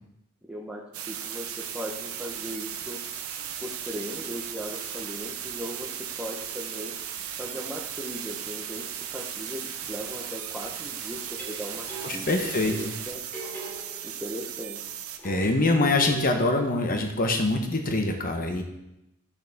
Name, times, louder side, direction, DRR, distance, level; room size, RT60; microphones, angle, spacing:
voice 1, 0.5-0.8 1.1-3.0 3.6-5.9 6.2-6.9 7.4-8.9 9.1-11.2 11.5-13.2 14.0-14.8, equal, 5° right, -4 dB, 0.8 m, -38 dB
sound 1, 0.9-15.2, right 9 dB, 80° right, 0.9 m, -36 dB
sound 2, 11.3-12.5 13.3-14.4 15.2-16.6, right 3 dB, 10° left, 2.9 m, -41 dB
voice 2, 12.0-12.9 15.2-18.6, left 2 dB, 40° left, 4 dB, 0.9 m, -24 dB
11.0 x 6.6 x 3.5 m, 0.88 s
head